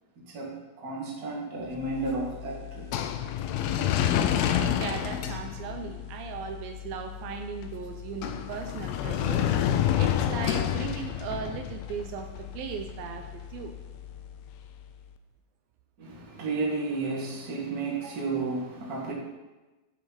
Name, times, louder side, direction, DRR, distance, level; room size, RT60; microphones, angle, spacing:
voice 1, 0.2-2.9 16.0-19.1, right 3 dB, 30° right, -3 dB, 2.0 m, -32 dB
sound 1, 1.8-14.9, left 10 dB, 85° left, 2.5 m, -30 dB
voice 2, 4.8-13.8 18.0-18.2, right 6 dB, 80° right, 5 dB, 2.4 m, -38 dB
12.5 x 7.6 x 4.3 m, 1.1 s
omnidirectional pair, 4.3 m